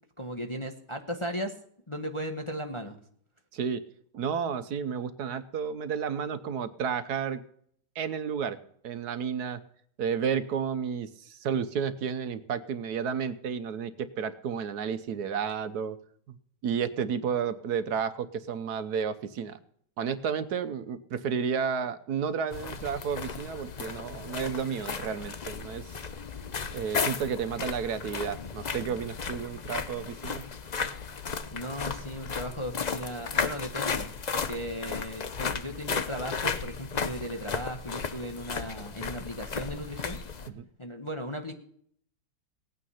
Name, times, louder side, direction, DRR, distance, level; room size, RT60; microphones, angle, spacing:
voice 1, 0.2-1.5 1.9-3.0 31.5-40.2 40.8-41.5, equal, 20° left, 4 dB, 1.0 m, -36 dB
voice 2, 3.5-3.8 4.1-7.4 8.0-8.6 8.8-9.6 10.0-16.0 16.3-16.4 16.6-19.6 20.0-25.9 26.7-30.4 40.5-40.6, right 7 dB, 70° right, 11 dB, 1.3 m, -32 dB
sound 1, 22.5-40.5, left 5 dB, 80° left, 0.3 m, -35 dB
17.5 x 9.2 x 5.6 m, 0.63 s
omnidirectional pair, 1.9 m